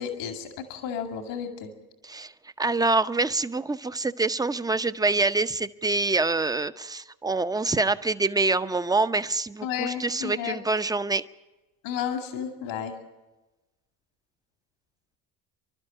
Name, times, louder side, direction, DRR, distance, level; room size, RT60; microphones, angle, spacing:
voice 1, 0.0-1.7 9.6-10.6 11.8-12.9, left 8 dB, 75° left, 5 dB, 2.4 m, -32 dB
voice 2, 2.6-11.2, right 3 dB, 10° right, 12 dB, 0.7 m, -25 dB
26.5 x 12.0 x 8.9 m, 1.1 s
hypercardioid pair, 65°, 48 cm